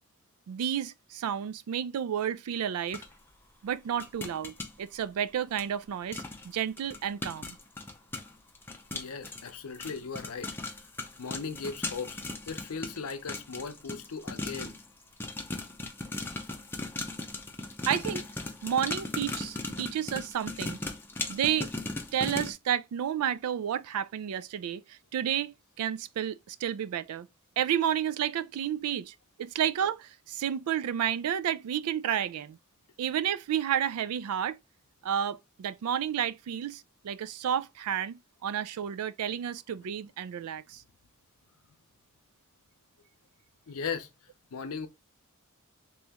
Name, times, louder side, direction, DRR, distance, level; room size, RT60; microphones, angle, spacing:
voice 1, 0.5-3.0 3.6-7.6 17.9-18.3 18.6-20.8 21.3-21.7 22.1-27.3 27.6-29.1 29.4-32.6 33.0-34.6 35.0-40.8, right 9 dB, 90° right, 0.3 m, -31 dB
sound 1, 2.9-3.0 4.0-4.7 5.6-5.7 6.1-6.5 6.8-14.9 15.2-22.5, left 2 dB, 10° left, 0.6 m, -37 dB
voice 2, 8.9-10.5 11.2-12.2 12.5-14.8 43.7-44.1 44.5-44.9, left 5 dB, 90° left, 0.6 m, -37 dB
3.1 x 2.9 x 3.4 m
head